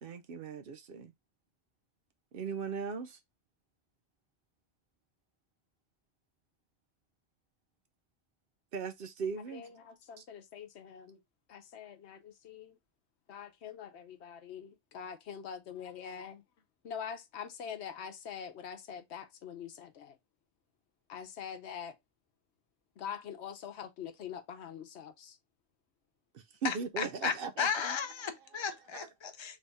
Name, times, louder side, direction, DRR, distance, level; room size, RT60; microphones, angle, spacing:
voice 1, 0.0-1.1 2.3-3.2 8.7-9.6 26.3-28.0 28.9-29.1, right 5 dB, 65° right, 0.7 m, -38 dB
voice 2, 9.5-11.2 11.5-12.8 13.3-16.4 16.8-20.2 21.1-22.0 23.0-25.4, left 8 dB, 80° left, 1.0 m, -44 dB
voice 3, 26.6-29.6, left 7 dB, 30° left, 0.6 m, -35 dB
3.5 x 3.3 x 3.9 m
omnidirectional pair, 1.1 m